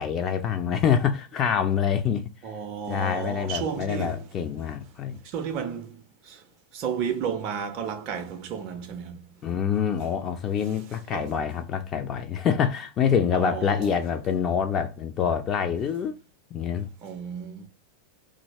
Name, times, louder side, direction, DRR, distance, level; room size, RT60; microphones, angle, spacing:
voice 1, 0.0-2.3 2.9-5.2 9.4-16.1 16.5-16.9, left 7 dB, 30° left, 0.3 m, -26 dB
voice 2, 2.4-4.3 5.2-6.0 6.3-6.4 6.7-9.2 11.1-11.3 13.3-13.9 17.0-17.7, right 7 dB, 40° right, 0.4 m, -32 dB
2.7 x 2.5 x 2.8 m
figure-of-eight pair, 90°, 0 cm